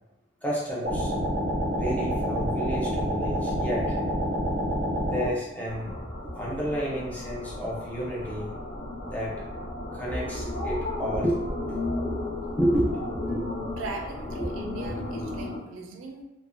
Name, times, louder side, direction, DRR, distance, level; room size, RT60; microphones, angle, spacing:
voice 1, 0.4-1.1 1.7-4.0 5.0-8.6 9.0-9.4 9.9-12.1 12.6-13.4 14.4-14.5, equal, 10° left, -5 dB, 0.5 m, -31 dB
sound 1, 0.8-5.3, equal, 35° right, 0.6 m, -27 dB
sound 2, 5.7-15.6, left 2 dB, 60° left, 0.6 m, -34 dB
voice 2, 13.8-16.2, right 3 dB, 90° right, 2 dB, 0.4 m, -39 dB
2.4 x 2.1 x 2.4 m, 0.97 s
head